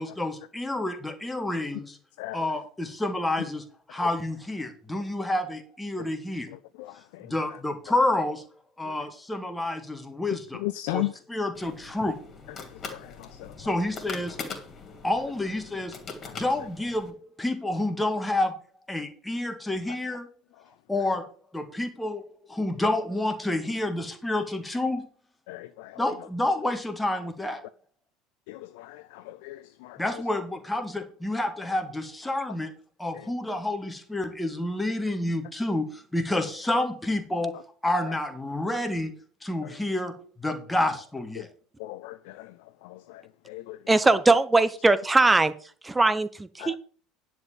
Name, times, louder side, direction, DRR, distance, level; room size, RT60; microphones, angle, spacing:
voice 1, 0.0-2.0 2.3-6.5 7.2-8.4 8.8-10.6 10.9-12.2 13.6-14.4 15.0-16.0 16.2-18.6 18.9-20.3 20.9-21.3 21.5-25.1 26.0-27.6 30.0-32.7 33.0-39.1 39.4-41.5, left 1 dB, 10° left, 1.8 m, -29 dB
voice 2, 10.6-11.1 12.9-13.0 13.4-13.5 25.5-25.9 28.5-30.0 41.4-41.5 41.8-42.5 42.8-42.9 43.5-43.8 46.6-46.8, left 17 dB, 60° left, 0.4 m, -35 dB
sound 1, 11.5-17.1, left 5 dB, 35° left, 2.8 m, -42 dB
voice 3, 43.9-45.5 45.8-46.8, right 2 dB, 10° right, 0.9 m, -20 dB
10.5 x 4.6 x 7.4 m
figure-of-eight pair, 65°, 0 cm